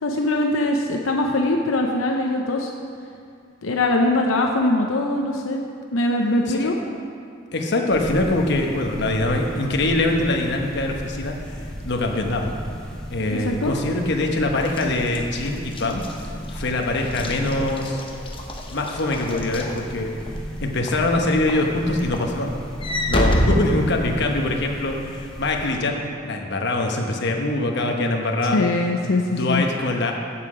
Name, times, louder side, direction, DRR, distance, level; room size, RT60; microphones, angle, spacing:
voice 1, 0.0-2.7 3.6-5.6 5.9-6.8 13.3-13.7 28.5-29.6, left 2 dB, 85° left, 1 dB, 0.7 m, -22 dB
voice 2, 7.5-11.4 11.8-12.6 13.1-16.0 16.5-18.0 18.7-20.1 20.6-22.6 23.1-28.6 29.0-30.1, left 2 dB, 60° left, 2 dB, 1.0 m, -23 dB
sound 1, 7.9-25.7, equal, 5° left, 1.0 m, -35 dB
Walk footsteps / Slam, 14.6-20.4 20.9-21.2 21.5-24.5, left 1 dB, 25° left, 0.8 m, -27 dB
14.0 x 5.9 x 4.9 m, 2.4 s
head